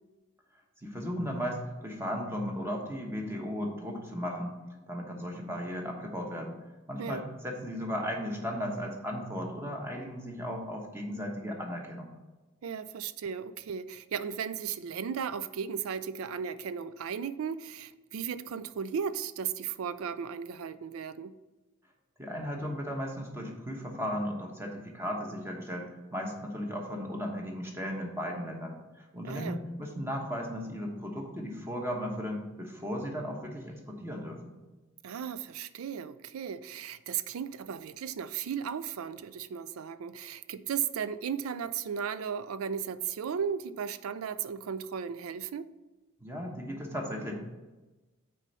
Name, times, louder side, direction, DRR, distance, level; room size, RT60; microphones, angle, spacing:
voice 1, 0.8-4.5 4.9-6.6 6.9-12.1 22.2-34.5 46.2-47.3, equal, 10° right, 1.1 m, -36 dB
voice 2, 12.6-21.4 29.2-29.6 35.0-45.7, right 7 dB, 75° right, 0.4 m, -35 dB
6.2 x 4.4 x 5.3 m
head